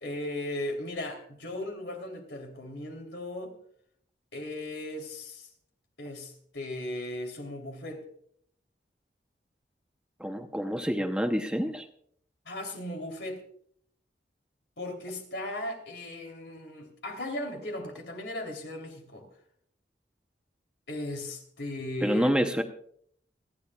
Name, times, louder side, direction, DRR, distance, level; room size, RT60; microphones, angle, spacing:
voice 1, 0.0-3.5 4.3-5.5 6.0-8.0 12.5-13.4 14.8-19.3 20.9-22.4, left 1 dB, 75° left, 3 dB, 3.3 m, -37 dB
voice 2, 10.2-11.9 22.0-22.6, equal, 5° right, 5 dB, 0.8 m, -27 dB
29.5 x 10.5 x 2.4 m, 0.63 s
head